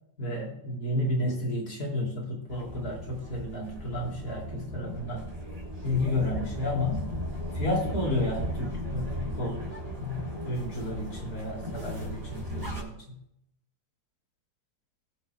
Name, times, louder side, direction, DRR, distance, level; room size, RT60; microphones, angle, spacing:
voice 1, 0.2-5.3 5.8-7.0 7.5-13.2, left 1 dB, 50° left, -1 dB, 3.2 m, -31 dB
sound 1, 2.5-12.8, equal, 30° right, 3.1 m, -36 dB
23.0 x 7.6 x 2.2 m, 0.79 s
omnidirectional pair, 2.2 m